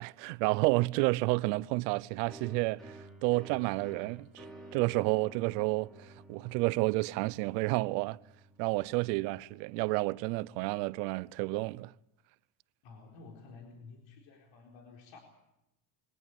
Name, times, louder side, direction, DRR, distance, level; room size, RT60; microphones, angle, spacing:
voice 1, 0.0-3.0 3.2-4.4 4.7-5.9 6.3-8.2 8.6-11.9, right 23 dB, 85° right, 0.8 m, -30 dB
sound 1, 2.2-9.7, right 2 dB, ahead, 4.9 m, -53 dB
voice 2, 12.8-15.2, left 4 dB, 65° left, 4.3 m, -52 dB
23.5 x 18.0 x 8.6 m
supercardioid pair, 115°, 48 cm